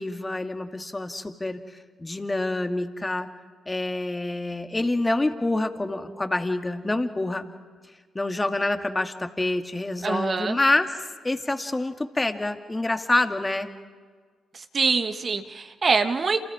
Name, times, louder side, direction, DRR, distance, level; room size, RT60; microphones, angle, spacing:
voice 1, 0.0-3.3 3.7-7.4 8.1-10.9 11.2-13.7, left 2 dB, 20° left, 7 dB, 2.1 m, -27 dB
voice 2, 10.0-10.6 14.5-16.4, right 4 dB, 45° right, 7 dB, 1.6 m, -24 dB
29.0 x 28.0 x 5.0 m, 1.6 s
hypercardioid pair, 45°, 0 cm